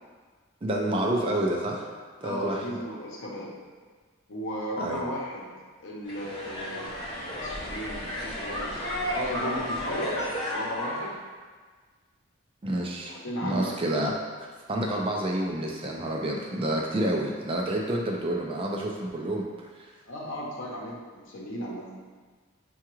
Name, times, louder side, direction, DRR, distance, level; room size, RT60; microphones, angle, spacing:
voice 1, 0.6-1.9 2.2-2.8 4.8-5.0 12.6-13.1 13.4-14.1 14.4-19.5 19.8-19.9, right 1 dB, 25° right, 0 dB, 0.3 m, -29 dB
voice 2, 2.2-3.5 4.3-5.5 5.8-7.0 7.4-8.8 9.1-10.1 10.5-11.2 13.0-13.7 20.1-21.9, equal, 65° left, -3 dB, 0.8 m, -35 dB
sound 1, 6.0-11.1, equal, 20° left, 0.9 m, -33 dB
5.7 x 2.3 x 3.0 m, 1.5 s
head